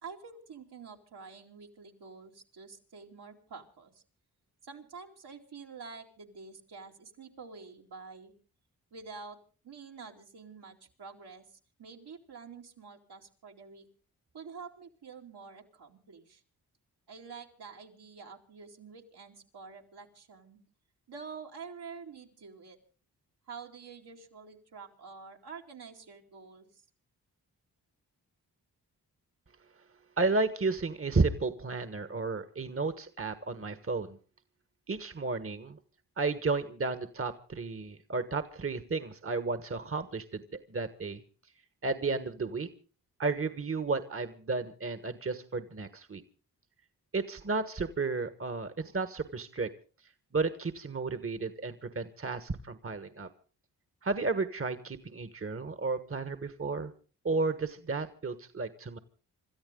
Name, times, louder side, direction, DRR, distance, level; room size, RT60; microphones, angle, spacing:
voice 1, 0.0-4.0 4.6-8.3 8.9-9.4 9.6-13.9 14.3-16.4 17.1-20.6 21.1-22.8 23.5-26.8, right 5 dB, 75° right, 0 dB, 2.9 m, -48 dB
voice 2, 30.2-34.2 34.9-35.8 36.2-40.4 40.7-41.2 41.8-42.7 43.2-46.2 47.1-49.7 50.3-53.3 54.0-56.9 57.2-59.0, right 3 dB, 35° right, 11 dB, 1.4 m, -32 dB
26.5 x 13.5 x 3.8 m, 0.37 s
cardioid pair, 45°, 40 cm